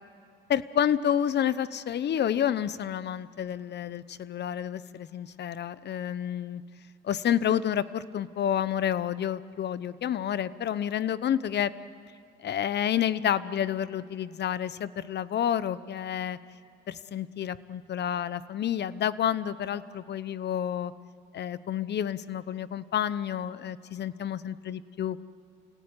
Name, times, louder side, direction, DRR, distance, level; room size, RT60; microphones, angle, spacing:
voice 1, 0.5-6.6 7.0-11.7 12.4-16.4 16.9-20.9 21.3-25.2, left 9 dB, 60° left, 16 dB, 0.9 m, -29 dB
28.5 x 17.5 x 9.6 m, 2.5 s
cardioid pair, 90°, 20 cm